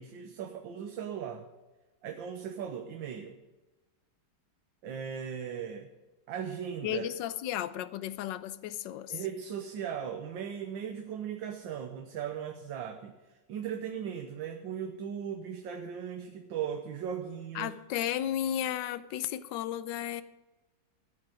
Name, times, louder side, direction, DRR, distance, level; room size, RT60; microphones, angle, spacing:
voice 1, 0.0-1.5 2.0-3.3 4.8-5.9 6.3-7.1 9.1-13.1 13.5-17.7, right 8 dB, 85° right, 5 dB, 1.6 m, -38 dB
voice 2, 6.8-9.2 17.5-20.2, left 11 dB, 80° left, 14 dB, 1.3 m, -34 dB
14.5 x 9.0 x 5.0 m, 1.2 s
omnidirectional pair, 2.0 m